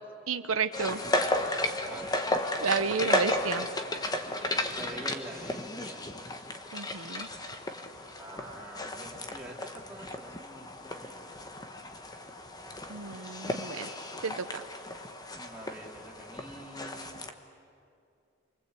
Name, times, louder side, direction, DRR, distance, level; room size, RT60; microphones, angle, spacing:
voice 1, 0.3-1.0 2.6-3.7 6.7-7.3 12.9-13.9 14.2-14.6, right 5 dB, 90° right, 9 dB, 1.0 m, -31 dB
sound 1, 0.7-17.3, left 1 dB, 20° left, 1.3 m, -34 dB
voice 2, 1.8-2.1 4.8-6.1 8.1-11.6 15.3-17.1, right 1 dB, 5° right, -4 dB, 3.8 m, -46 dB
29.0 x 23.5 x 8.4 m, 2.5 s
head